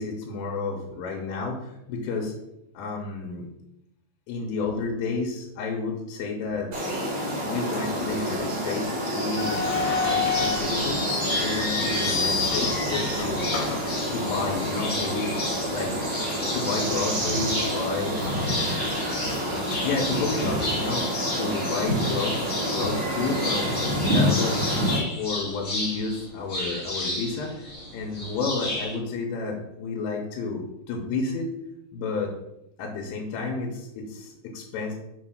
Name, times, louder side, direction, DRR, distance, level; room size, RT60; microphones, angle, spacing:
voice 1, 0.0-2.3 2.8-3.5 4.3-6.7 7.5-11.1 11.4-13.5 14.1-15.3 15.7-15.9 16.5-18.9 19.8-21.1 21.3-22.4 22.7-23.7 24.1-24.8 25.2-31.5 31.9-32.4 32.8-34.9, left 4 dB, 85° left, 1 dB, 3.4 m, -31 dB
sound 1, 6.7-25.0, equal, 80° right, 1.1 m, -28 dB
sound 2, 9.4-14.7 15.0-15.1 15.8-16.0 16.5-16.6 17.2-17.8 18.1-20.6, left 5 dB, 60° left, 2.2 m, -30 dB
sound 3, 10.0-29.0, left 2 dB, 35° left, 1.7 m, -33 dB
7.0 x 3.3 x 6.1 m, 0.87 s
omnidirectional pair, 5.7 m